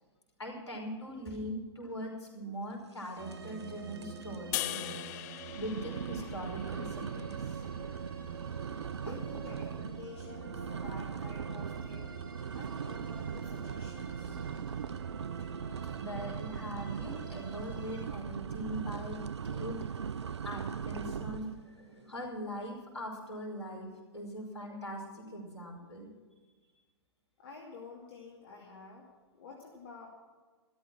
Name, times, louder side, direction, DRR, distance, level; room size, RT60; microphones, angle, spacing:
voice 1, 0.4-4.9 5.6-7.6 9.1-9.6 16.0-19.2 19.4-19.8 20.4-23.9 24.1-26.1, equal, 80° left, 0 dB, 5.4 m, -41 dB
sound 1, 3.2-18.1, right 6 dB, 50° right, 2.3 m, -45 dB
sound 2, 3.3-3.7 4.0-4.4 4.8-4.9 5.5-21.6, right 7 dB, 75° right, 0.5 m, -40 dB
sound 3, 4.5-7.8, left 17 dB, 40° left, 0.5 m, -40 dB
voice 2, 9.0-12.2 12.5-14.4 27.4-29.1 29.3-30.1, left 4 dB, 55° left, -1 dB, 2.5 m, -50 dB
14.0 x 13.5 x 6.2 m, 1.4 s
figure-of-eight pair, 105°, 14 cm